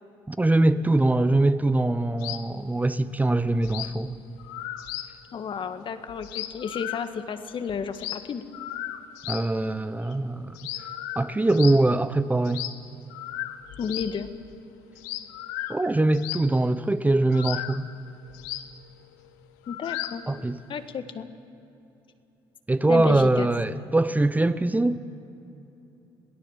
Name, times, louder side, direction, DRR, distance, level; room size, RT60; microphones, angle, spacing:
voice 1, 0.3-4.2 9.3-10.6 11.2-12.6 15.7-17.8 20.3-20.6 22.7-25.0, right 2 dB, 15° right, 13 dB, 0.9 m, -22 dB
sound 1, 2.2-2.5 2.8-2.9 3.2-3.3 3.6-4.0 4.4-5.2 5.4-5.5 5.7-5.8 6.1-7.4 7.7-9.5 9.9-10.1 10.5-11.9 12.5-12.8 13.1-14.7 15.0-16.6 17.3-20.4, left 13 dB, 80° left, 1.0 m, -36 dB
voice 2, 5.3-8.4 13.8-14.3 19.7-20.2 20.7-21.3 22.9-23.5, left 6 dB, 50° left, 9 dB, 1.7 m, -32 dB
27.0 x 18.0 x 7.5 m, 3.0 s
hypercardioid pair, 55°, 11 cm